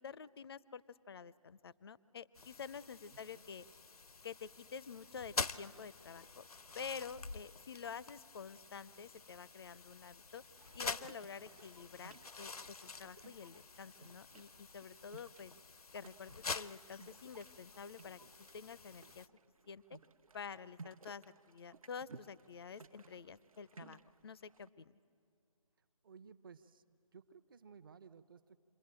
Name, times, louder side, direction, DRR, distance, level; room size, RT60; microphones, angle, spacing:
voice 1, 0.0-3.6 4.2-6.4 6.7-10.4 10.7-15.5 15.9-19.3 19.7-20.0 20.3-24.9, left 6 dB, 45° left, 19 dB, 0.5 m, -49 dB
sound 1, 2.3-19.3, left 4 dB, 85° left, 0.7 m, -47 dB
voice 2, 3.1-3.5 25.8-26.8 27.1-28.6, right 6 dB, 35° right, 11 dB, 0.8 m, -58 dB
sound 2, 10.6-24.7, right 4 dB, 70° right, 0.9 m, -59 dB
27.5 x 21.5 x 8.8 m, 2.6 s
figure-of-eight pair, 155°, 19 cm